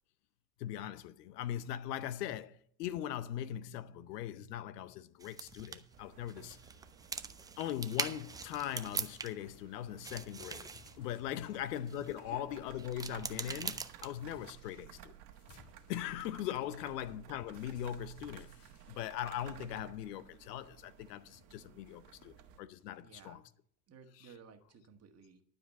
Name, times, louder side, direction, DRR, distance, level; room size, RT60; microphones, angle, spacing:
voice 1, 0.6-6.6 7.6-10.7 11.0-15.1 15.9-18.6 18.9-23.4 24.2-24.3, left 11 dB, 80° left, 0.8 m, -40 dB
sound 1, 5.2-9.6 9.9-12.2 12.7-14.4, right 5 dB, 10° right, 0.3 m, -42 dB
sound 2, 5.5-7.0 7.4-12.4 12.9-13.0 13.2-23.3, left 5 dB, 45° left, 2.4 m, -66 dB
sound 3, 5.9-22.6, right 10 dB, 65° right, 1.5 m, -56 dB
voice 2, 23.0-23.5 23.9-25.4, right 6 dB, 30° right, 1.6 m, -57 dB
12.0 x 5.1 x 8.2 m
hypercardioid pair, 95°, 47 cm